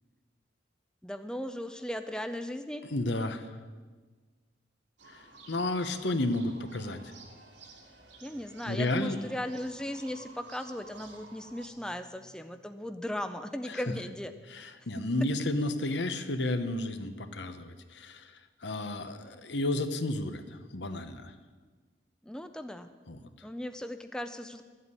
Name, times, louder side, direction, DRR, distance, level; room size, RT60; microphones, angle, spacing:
voice 1, 1.0-2.9 8.2-14.3 22.2-22.9 23.4-24.6, left 1 dB, 5° left, 8 dB, 0.5 m, -37 dB
voice 2, 2.9-3.5 5.1-7.0 8.7-9.2 13.7-13.8 14.5-21.3 23.1-23.2, left 2 dB, 70° left, 9 dB, 1.1 m, -32 dB
sound 1, 5.0-11.7, right 3 dB, 80° right, 2.4 m, -53 dB
13.0 x 8.1 x 9.7 m, 1.4 s
head